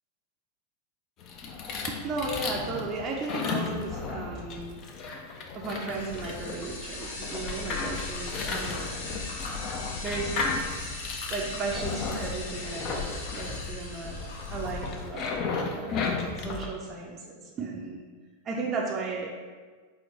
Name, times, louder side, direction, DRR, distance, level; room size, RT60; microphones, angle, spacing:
sound 1, 1.2-16.6, left 4 dB, 35° left, 0.4 m, -35 dB
voice 1, 1.9-4.8 5.5-9.1 10.0-10.5 11.3-14.2 14.5-18.1 18.4-19.3, right 3 dB, 30° right, -2 dB, 0.5 m, -35 dB
sound 2, 5.9-15.0, left 3 dB, 65° left, 0.8 m, -37 dB
4.3 x 2.1 x 3.8 m, 1.5 s
figure-of-eight pair, 90°, 0 cm